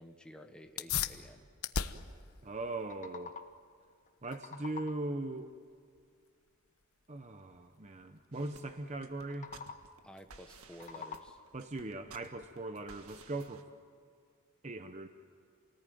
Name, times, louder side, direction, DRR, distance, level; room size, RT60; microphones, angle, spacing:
voice 1, 0.0-1.4 10.0-11.4, equal, 5° left, 4 dB, 1.5 m, -52 dB
sound 1, 0.6-10.7, left 7 dB, 75° left, 1.1 m, -43 dB
voice 2, 2.4-3.3 4.2-5.5 7.1-9.5 11.5-13.7 14.6-15.1, right 2 dB, 30° right, 7 dB, 0.9 m, -40 dB
sound 2, 2.6-3.7 4.1-5.2 9.2-10.1 10.5-11.6, left 5 dB, 35° left, 1.2 m, -48 dB
sound 3, 8.3-13.6, right 4 dB, 70° right, 1.7 m, -56 dB
28.5 x 19.5 x 9.3 m, 2.2 s
head